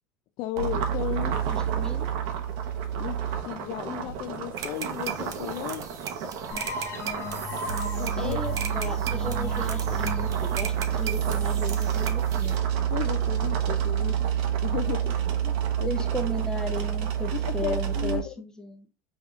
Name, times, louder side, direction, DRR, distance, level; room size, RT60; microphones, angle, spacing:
voice 1, 0.4-1.4 1.8-1.9 2.9-5.9 8.0-8.4 9.2-9.3 12.9-14.2 14.6-15.9 17.3-18.3, left 13 dB, 50° left, 0.4 m, -34 dB
sound 1, 0.6-18.2, right 9 dB, 65° right, 0.8 m, -28 dB
voice 2, 1.3-2.1 8.2-12.5 15.8-18.9, left 1 dB, 10° left, 0.6 m, -36 dB
sound 2, 4.6-12.6, right 8 dB, 40° right, 0.7 m, -38 dB
sound 3, 6.5-12.0, left 3 dB, 30° left, 0.9 m, -37 dB
5.6 x 2.8 x 2.3 m
supercardioid pair, 135°, 9 cm